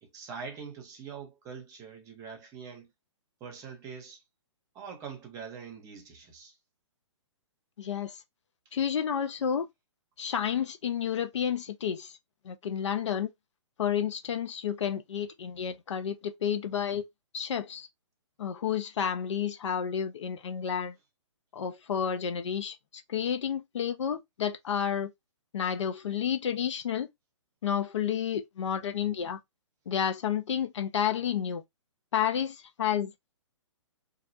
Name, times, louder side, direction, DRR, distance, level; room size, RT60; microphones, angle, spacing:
voice 1, 0.0-2.9 3.4-4.2 4.7-6.6, right 6 dB, 20° right, 0.8 m, -43 dB
voice 2, 7.8-8.1 8.7-9.7 10.2-12.1 12.4-13.3 13.8-17.1 17.3-17.9 18.4-20.9 21.5-22.8 23.1-25.1 25.5-27.1 27.6-29.4 29.9-31.6 32.1-33.1, left 8 dB, 65° left, 0.6 m, -30 dB
2.4 x 2.0 x 2.6 m
hypercardioid pair, 135°, 16 cm